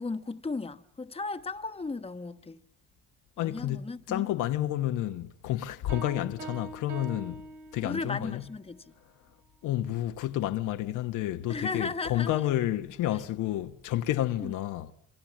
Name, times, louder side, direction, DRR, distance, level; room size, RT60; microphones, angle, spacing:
voice 1, 0.0-2.6 3.4-4.3 7.8-8.9 11.5-12.5 14.4-14.5, left 3 dB, 20° left, 1.1 m, -36 dB
voice 2, 3.4-7.4 7.7-8.4 9.6-14.9, left 13 dB, 90° left, 1.0 m, -30 dB
Piano, 5.9-8.3, right 4 dB, 80° right, 3.9 m, -43 dB
27.5 x 24.0 x 7.4 m
cardioid pair, 90°, 30 cm